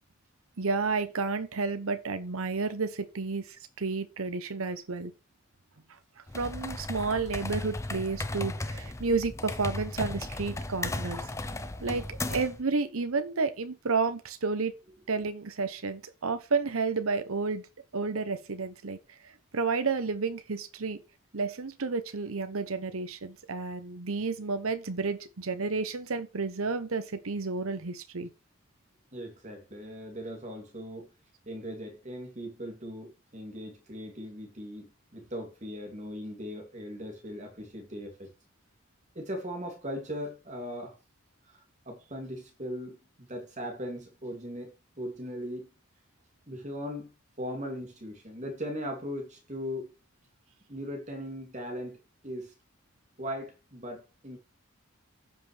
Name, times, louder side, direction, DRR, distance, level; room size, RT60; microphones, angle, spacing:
voice 1, 0.6-5.1 6.3-11.2 11.8-14.7 15.1-17.7 17.9-19.0 19.2-21.0 21.3-28.3, right 4 dB, 75° right, 0.9 m, -31 dB
sound 1, 6.3-12.6, left 2 dB, 15° left, 0.4 m, -36 dB
voice 2, 29.1-31.1 31.5-38.3 39.1-41.0 41.5-44.7 45.0-45.7 46.5-47.1 47.4-49.9 50.7-52.0 52.2-52.5 53.2-54.4, equal, 35° right, 2.6 m, -39 dB
15.0 x 5.7 x 3.4 m
head